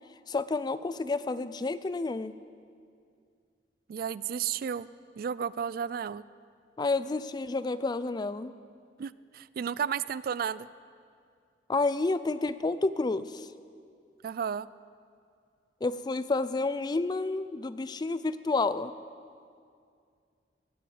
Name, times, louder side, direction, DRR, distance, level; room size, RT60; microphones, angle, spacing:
voice 1, 0.3-2.3 6.8-8.5 11.7-13.5 15.8-18.9, left 3 dB, 25° left, 15 dB, 0.4 m, -30 dB
voice 2, 3.9-4.9 5.2-6.2 9.0-10.7 14.2-14.7, right 7 dB, 55° right, 18 dB, 0.3 m, -33 dB
17.0 x 7.8 x 8.0 m, 2.3 s
head